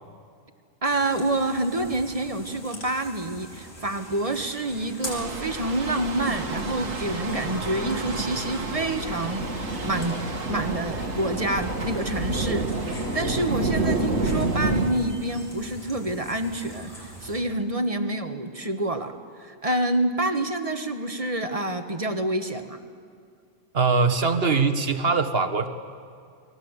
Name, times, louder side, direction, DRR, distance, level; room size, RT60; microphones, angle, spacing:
sound 1, 0.8-17.4, left 1 dB, 50° left, 5.0 m, -44 dB
voice 1, 0.8-10.2 10.5-22.8, right 1 dB, 30° right, 7 dB, 1.5 m, -28 dB
sound 2, 5.0-14.9, right 2 dB, 80° right, 2.6 m, -29 dB
voice 2, 23.7-25.7, right 4 dB, 50° right, 8 dB, 1.7 m, -22 dB
29.5 x 22.5 x 8.2 m, 2.3 s
omnidirectional pair, 1.3 m